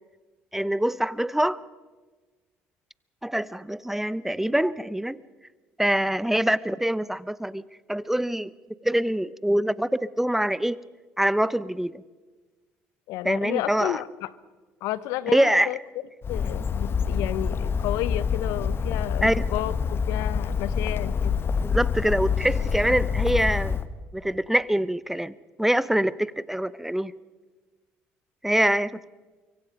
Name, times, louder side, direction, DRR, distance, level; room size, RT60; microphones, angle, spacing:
voice 1, 0.5-1.6 3.2-5.2 5.8-7.6 7.9-8.5 8.8-10.8 11.2-12.0 13.2-14.0 15.3-15.7 19.2-19.4 21.7-23.8 24.1-25.3 25.6-27.1 28.4-29.0, right 1 dB, 5° right, 19 dB, 0.7 m, -24 dB
voice 2, 13.1-14.3 14.8-15.8 16.3-21.3, left 14 dB, 75° left, 18 dB, 0.8 m, -31 dB
Bird, 16.2-23.8, left 6 dB, 45° left, 1.2 m, -26 dB
24.5 x 23.5 x 5.4 m, 1.3 s
hypercardioid pair, 70°, 6 cm